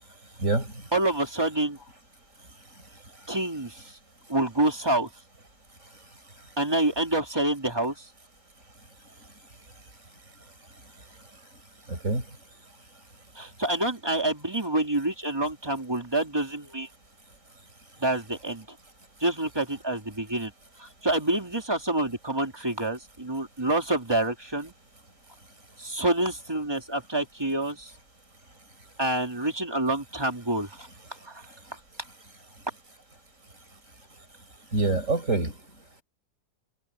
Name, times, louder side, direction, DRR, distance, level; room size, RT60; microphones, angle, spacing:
voice 1, 0.4-0.7 11.9-12.2 34.7-35.5, right 3 dB, 50° right, 5.7 m, -25 dB
voice 2, 0.9-1.8 3.3-4.0 4.3-5.1 6.6-8.1 13.3-16.9 18.0-18.8 19.2-20.5 20.8-24.7 25.8-27.9 29.0-30.9 31.2-31.4, right 1 dB, 15° right, 3.0 m, -27 dB
omnidirectional pair, 1.8 m